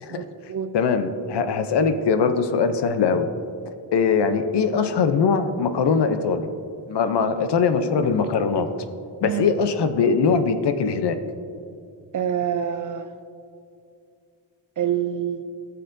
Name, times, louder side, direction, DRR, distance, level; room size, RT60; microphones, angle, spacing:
voice 1, 0.1-0.7 9.2-9.5 12.1-13.1 14.8-15.4, right 9 dB, 45° right, 10 dB, 0.4 m, -26 dB
voice 2, 0.7-3.3 3.9-6.5 6.9-8.7 9.2-11.2, left 5 dB, 60° left, 9 dB, 0.7 m, -21 dB
15.0 x 6.8 x 2.6 m, 2.4 s
wide cardioid pair, 130°, 46 cm